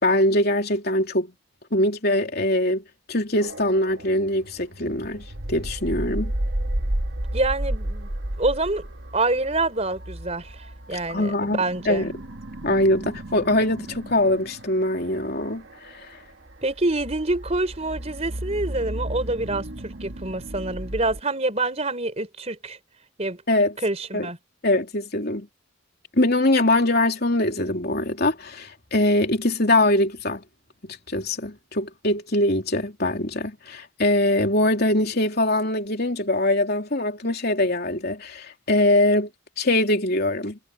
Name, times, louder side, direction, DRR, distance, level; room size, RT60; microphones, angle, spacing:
voice 1, 0.0-1.3 1.7-2.8 3.1-6.3 10.9-12.1 12.6-16.1 23.5-23.8 24.1-24.3 24.6-25.5 26.1-30.4 30.8-39.3 39.6-40.6, left 1 dB, 50° left, 3.5 m, -22 dB
sound 1, 3.4-21.2, right 1 dB, 60° right, 1.7 m, -33 dB
voice 2, 7.3-8.1 8.4-8.9 9.1-12.1 16.6-22.8 23.2-23.4 23.8-24.4, right 2 dB, 30° right, 4.2 m, -26 dB
head